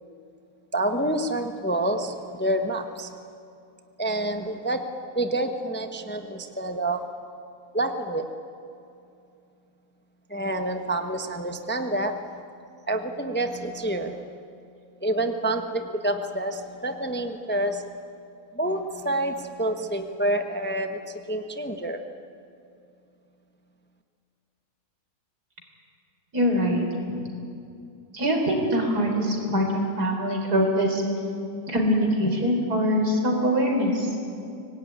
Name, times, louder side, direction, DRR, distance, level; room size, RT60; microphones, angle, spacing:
voice 1, 0.7-3.2 4.0-4.8 5.1-7.0 7.7-8.2 10.3-12.4 12.9-14.4 15.0-17.9 18.5-22.0, right 1 dB, 10° left, 6 dB, 0.9 m, -28 dB
voice 2, 26.3-26.9 28.1-31.0 31.7-34.1, equal, 80° right, 2 dB, 4.6 m, -23 dB
24.5 x 19.0 x 9.6 m, 2.6 s
omnidirectional pair, 1.7 m